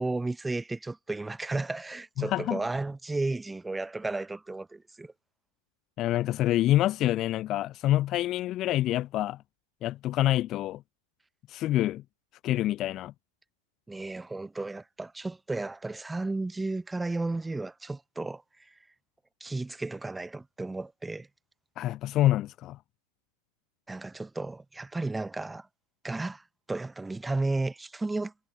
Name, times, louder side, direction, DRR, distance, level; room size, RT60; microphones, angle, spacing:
voice 1, 0.0-5.1 13.9-18.7 19.4-21.3 23.9-25.7 26.0-28.3, right 2 dB, 10° right, 1.6 m, -33 dB
voice 2, 2.2-2.6 6.0-9.4 9.8-10.8 11.5-12.0 12.4-13.1 21.8-22.8, left 14 dB, 35° left, 0.6 m, -26 dB
figure-of-eight pair, 90°, 0 cm